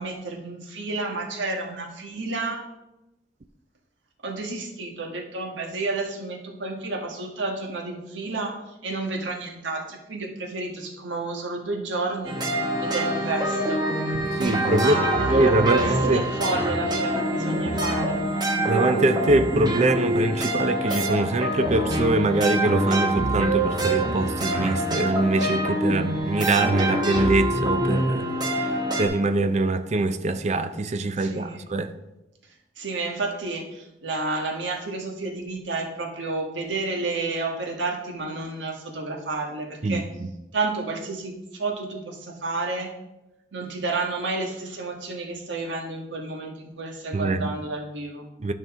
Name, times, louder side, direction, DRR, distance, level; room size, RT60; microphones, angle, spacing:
voice 1, 0.0-2.7 4.2-12.4 12.8-13.9 14.8-18.2 31.2-31.6 32.8-40.0 40.5-42.9 43.5-48.3, right 3 dB, 85° right, 1.4 m, -31 dB
sound 1, 12.2-29.1, right 1 dB, 25° right, 1.4 m, -25 dB
voice 2, 14.4-14.9 15.3-15.8 16.1-16.2 18.7-31.9 39.8-40.1 47.1-47.5 48.4-48.5, right 2 dB, 40° right, 0.5 m, -23 dB
11.5 x 5.4 x 3.6 m
head